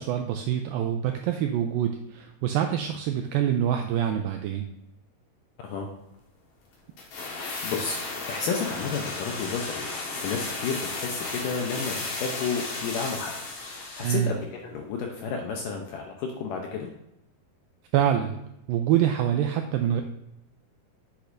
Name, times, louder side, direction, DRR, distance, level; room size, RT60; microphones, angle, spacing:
voice 1, 0.0-4.7 14.0-14.3 17.9-18.4 18.7-20.0, right 10 dB, 90° right, 5 dB, 2.0 m, -25 dB
sound 1, 7.0-14.3 14.5-14.6, left 3 dB, 55° left, 2.4 m, -34 dB
voice 2, 7.2-8.0 8.3-13.3 13.6-16.9, left 5 dB, 75° left, 1 dB, 2.0 m, -32 dB
8.3 x 8.1 x 2.6 m, 0.85 s
omnidirectional pair, 4.7 m